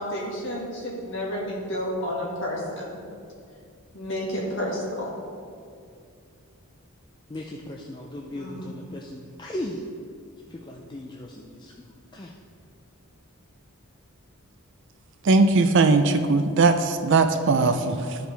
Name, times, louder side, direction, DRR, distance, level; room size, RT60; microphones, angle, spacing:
voice 1, 0.0-3.0 3.9-5.1 8.3-8.7, equal, 55° left, -4 dB, 1.9 m, -31 dB
voice 2, 7.3-9.8 10.5-12.3, left 1 dB, 20° left, -1 dB, 0.4 m, -37 dB
voice 3, 15.2-18.2, right 3 dB, 55° right, 8 dB, 0.4 m, -19 dB
13.0 x 5.1 x 3.3 m, 2.4 s
head